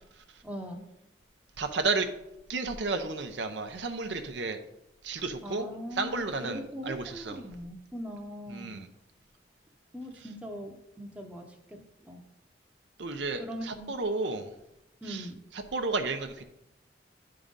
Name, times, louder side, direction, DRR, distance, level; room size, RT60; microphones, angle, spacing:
voice 1, 0.4-0.8 5.4-8.8 9.9-12.2 13.2-13.9 15.0-15.4, equal, 5° right, 3 dB, 0.7 m, -41 dB
voice 2, 1.6-2.1 2.5-4.6 5.0-5.7 5.9-7.4 8.5-8.9 13.0-14.5 15.1-15.2 15.7-16.4, right 3 dB, 70° right, 7 dB, 0.7 m, -32 dB
10.0 x 3.8 x 5.3 m, 0.86 s
head